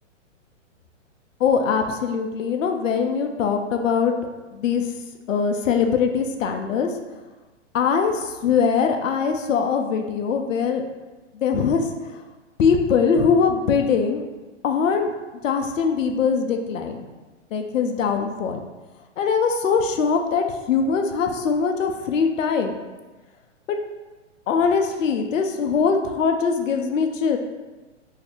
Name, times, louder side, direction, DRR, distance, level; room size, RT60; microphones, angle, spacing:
voice 1, 1.4-4.1 4.5-4.9 5.3-6.9 7.7-10.8 11.3-11.8 12.6-14.2 14.6-15.1 15.4-17.0 17.5-18.6 19.2-22.8 23.7-23.8 24.5-27.4, left 6 dB, 80° left, 4 dB, 0.5 m, -22 dB
2.7 x 2.4 x 3.4 m, 1.2 s
hypercardioid pair, 125°, 38 cm